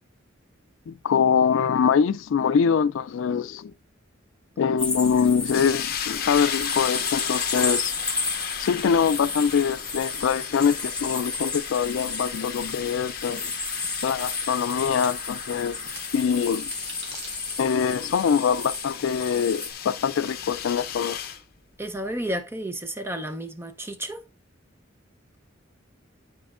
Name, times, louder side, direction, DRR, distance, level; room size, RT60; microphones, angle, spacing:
voice 1, 0.9-3.7 4.6-7.9 8.6-13.5 14.0-15.8 16.1-16.7 17.6-21.2, left 7 dB, 75° left, 0.3 m, -24 dB
sound 1, 4.8-19.7, left 3 dB, 5° left, 1.1 m, -33 dB
sound 2, 5.5-21.4, left 9 dB, 50° left, 0.7 m, -35 dB
sound 3, 14.2-14.3 15.0-15.2 16.0-16.1 16.6-17.8, right 3 dB, 60° right, 1.9 m, -41 dB
voice 2, 21.8-24.2, right 1 dB, 10° right, 0.6 m, -32 dB
10.0 x 4.3 x 2.4 m
head